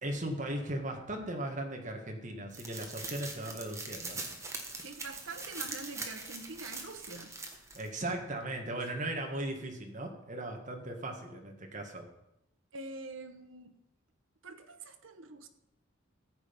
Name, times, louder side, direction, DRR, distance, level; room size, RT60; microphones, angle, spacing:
voice 1, 0.0-4.3 7.7-12.0, right 1 dB, 40° right, 2 dB, 1.7 m, -37 dB
sound 1, 2.5-7.9, right 3 dB, 15° right, 1.4 m, -42 dB
voice 2, 4.8-7.4 8.8-8.9 12.7-13.8 14.4-15.5, right 3 dB, 75° right, 7 dB, 1.1 m, -45 dB
14.5 x 7.6 x 5.3 m, 0.87 s
head